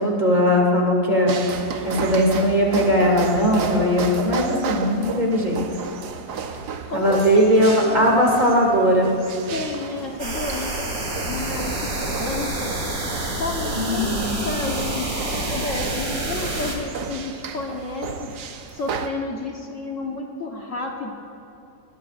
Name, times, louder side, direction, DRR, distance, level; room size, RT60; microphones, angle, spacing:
voice 1, 0.0-1.4 1.8-5.6 6.9-9.1 13.7-14.4, equal, 30° right, -2 dB, 2.6 m, -19 dB
sound 1, 1.3-19.1, right 6 dB, 90° right, 1.5 m, -33 dB
voice 2, 6.9-8.3 9.5-10.7 11.3-11.9 12.2-12.8 13.4-14.2 14.4-18.1 18.7-21.1, left 3 dB, 55° left, 1 dB, 1.5 m, -31 dB
sound 2, 10.2-16.8, right 2 dB, 65° right, 3.0 m, -28 dB
21.5 x 19.0 x 2.5 m, 2.9 s
omnidirectional pair, 1.7 m